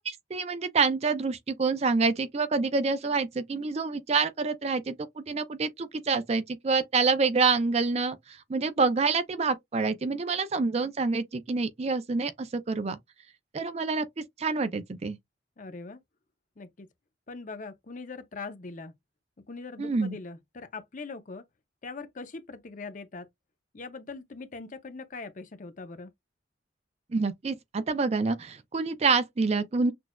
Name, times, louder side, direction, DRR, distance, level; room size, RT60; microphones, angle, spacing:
voice 1, 0.0-13.0 13.5-15.2 19.8-20.2 27.1-29.9, right 4 dB, 35° right, 0.4 m, -27 dB
voice 2, 15.6-16.0 16.6-16.9 17.3-19.0 19.5-21.4 21.8-23.3 23.7-26.1, left 3 dB, 45° left, 0.6 m, -41 dB
6.0 x 2.4 x 2.2 m
head